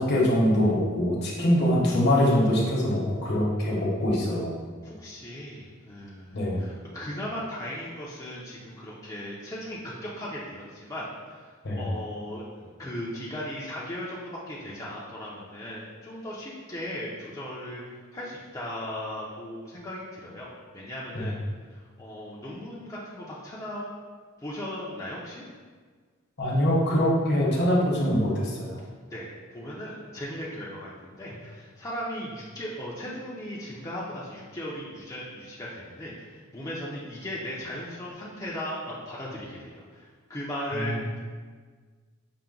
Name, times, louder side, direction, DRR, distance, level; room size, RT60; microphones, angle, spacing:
voice 1, 0.0-4.5 6.3-6.6 11.6-11.8 21.1-21.3 26.4-28.7 40.7-41.0, equal, 55° left, -3 dB, 0.9 m, -23 dB
voice 2, 2.1-2.5 4.8-11.5 11.8-21.3 21.7-23.9 24.4-25.4 29.1-41.2, left 1 dB, 15° left, -6 dB, 0.5 m, -37 dB
5.7 x 2.1 x 3.7 m, 1.5 s
head